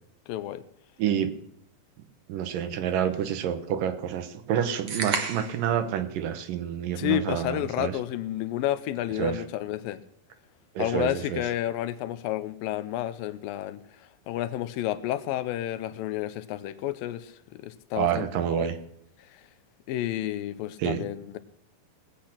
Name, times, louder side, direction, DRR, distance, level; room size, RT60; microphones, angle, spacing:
voice 1, 0.3-0.6 7.0-10.0 10.8-13.8 14.3-18.7 19.3-19.4 19.9-21.4, left 13 dB, 80° left, 2.3 m, -31 dB
voice 2, 1.0-1.3 2.3-8.0 9.2-9.4 10.8-11.4 17.9-18.8 20.8-21.0, right 9 dB, 70° right, 2.5 m, -28 dB
sound 1, 4.9-5.7, right 5 dB, 50° right, 1.8 m, -30 dB
20.0 x 8.5 x 5.9 m
omnidirectional pair, 4.4 m